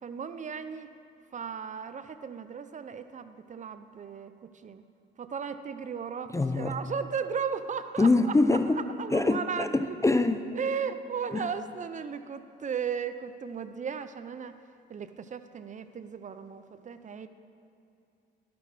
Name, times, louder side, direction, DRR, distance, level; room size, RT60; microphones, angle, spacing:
voice 1, 0.0-0.9 1.3-4.3 4.6-4.8 5.2-8.1 9.0-10.0 10.5-14.6 14.9-17.3, right 6 dB, 40° right, 10 dB, 0.5 m, -36 dB
voice 2, 6.3-6.8 8.0-8.8 9.1-10.5 11.3-11.5, left 2 dB, 15° left, 9 dB, 0.4 m, -24 dB
12.5 x 6.0 x 6.1 m, 2.7 s
cardioid pair, 90°, 20 cm